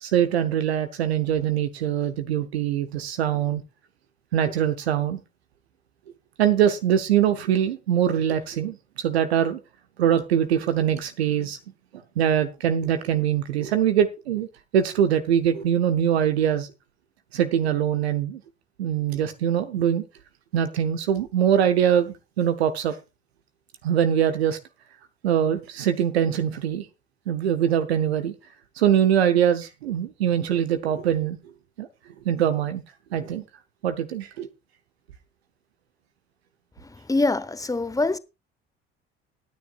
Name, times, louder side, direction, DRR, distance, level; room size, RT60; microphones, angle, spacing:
voice 1, 0.0-3.6 4.3-5.2 6.4-9.6 10.0-11.6 12.2-14.5 14.7-16.7 17.3-18.4 18.8-20.0 20.5-23.0 23.8-24.6 25.2-26.9 27.3-28.3 28.8-31.4 31.8-31.9 32.2-32.8 33.1-33.4 33.8-34.5, right 9 dB, 75° right, 1.0 m, -23 dB
voice 2, 36.8-38.2, left 2 dB, 10° left, 1.1 m, -25 dB
19.0 x 9.6 x 2.5 m
figure-of-eight pair, 55°, 32 cm